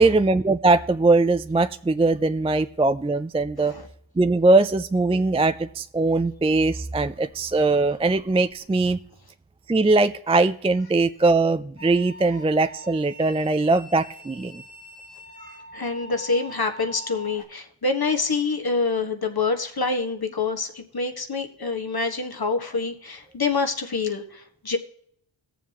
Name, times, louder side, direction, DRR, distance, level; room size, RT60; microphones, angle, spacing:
voice 1, 0.0-3.7 4.2-9.0 9.7-14.6, right 3 dB, 15° right, 10 dB, 0.3 m, -21 dB
sound 1, 11.8-17.4, right 1 dB, 85° left, 3.2 m, -43 dB
voice 2, 15.4-24.8, left 4 dB, 50° left, 6 dB, 1.5 m, -26 dB
18.5 x 7.2 x 2.9 m, 0.66 s
wide cardioid pair, 65°, 47 cm